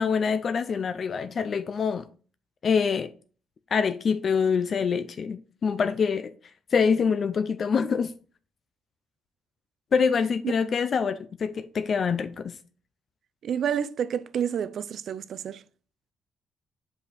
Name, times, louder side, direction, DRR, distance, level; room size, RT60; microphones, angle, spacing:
voice 1, 0.0-2.0 2.6-3.1 3.7-6.3 6.7-8.1 9.9-12.5, left 6 dB, 50° left, 0.4 m, -25 dB
voice 2, 13.4-15.6, right 8 dB, 65° right, 0.4 m, -29 dB
5.4 x 4.8 x 4.0 m
cardioid pair, 90°, 0 cm